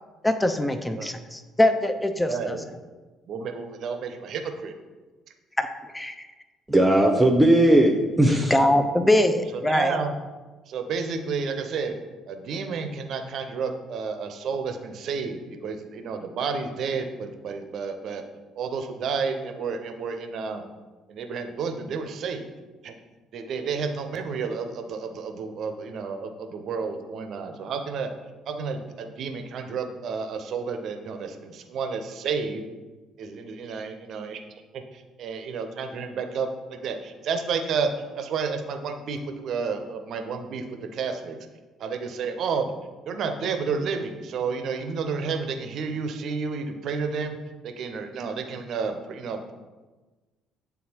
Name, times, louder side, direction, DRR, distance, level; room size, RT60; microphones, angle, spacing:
voice 1, 0.2-2.5 5.6-5.7 5.9-6.1 8.5-9.9, left 1 dB, 10° left, 8 dB, 0.6 m, -22 dB
voice 2, 2.2-2.7 3.3-4.7 8.6-8.9 9.3-10.1 10.7-12.0 12.3-18.2 18.6-20.7 21.1-22.5 22.8-22.9 23.3-28.1 28.5-32.6 33.2-34.4 34.9-37.9 38.1-41.4 41.8-42.7 43.1-47.4 47.6-49.5, right 5 dB, 60° right, 6 dB, 0.7 m, -31 dB
voice 3, 6.7-8.6, right 1 dB, 10° right, 0 dB, 0.9 m, -18 dB
9.2 x 3.6 x 2.9 m, 1.3 s
hypercardioid pair, 50°, 0 cm